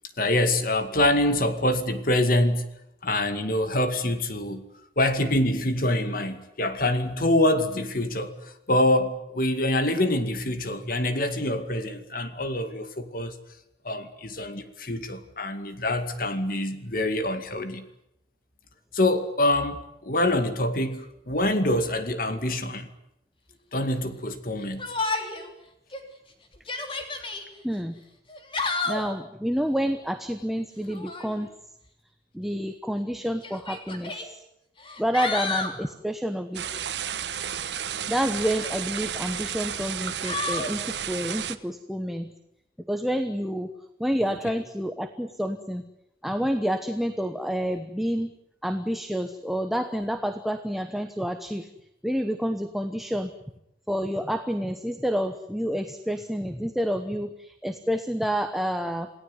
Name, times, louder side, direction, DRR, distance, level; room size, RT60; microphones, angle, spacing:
voice 1, 0.2-2.7 3.0-4.6 5.0-13.4 13.8-17.8 18.9-22.9 23.7-24.9 44.3-44.4, left 1 dB, 55° left, 2.2 m, -25 dB
Yell, 24.8-25.5 25.9-26.0 26.5-27.4 28.3-29.1 30.9-31.3 32.5-32.6 33.4-34.3 34.8-35.8 38.4-39.1 40.3-40.7, left 3 dB, 30° left, 3.4 m, -31 dB
voice 2, 27.6-28.0 28.9-31.5 32.3-34.4 35.0-36.8 38.1-42.3 42.9-43.7 44.0-45.8 46.2-48.3 48.6-51.7 52.0-53.3 53.9-59.1, equal, ahead, 1.1 m, -29 dB
sound 1, 36.5-41.6, right 8 dB, 80° right, 1.3 m, -32 dB
28.0 x 17.5 x 9.6 m
head